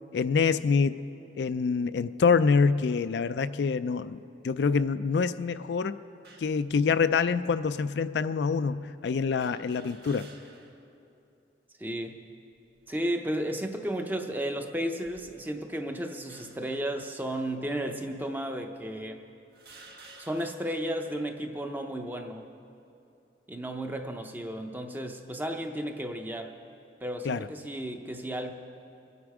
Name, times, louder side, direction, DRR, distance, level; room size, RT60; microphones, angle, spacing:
voice 1, 0.1-1.0 1.4-6.0 6.4-10.3 27.2-27.5, left 5 dB, 75° left, 12 dB, 0.4 m, -26 dB
sound 1, 6.2-6.6 7.5-7.6 9.4-10.9 11.3-11.4 12.5-13.0 13.6-13.9 14.9-15.7 16.3-16.8 17.7-17.8 18.7-18.8 19.5-20.8, right 2 dB, 65° right, 1.2 m, -53 dB
voice 2, 11.8-12.2 12.9-19.2 20.2-22.5 23.5-26.6 27.0-28.5, right 1 dB, 10° right, 5 dB, 0.7 m, -33 dB
23.5 x 9.6 x 4.9 m, 2.7 s
head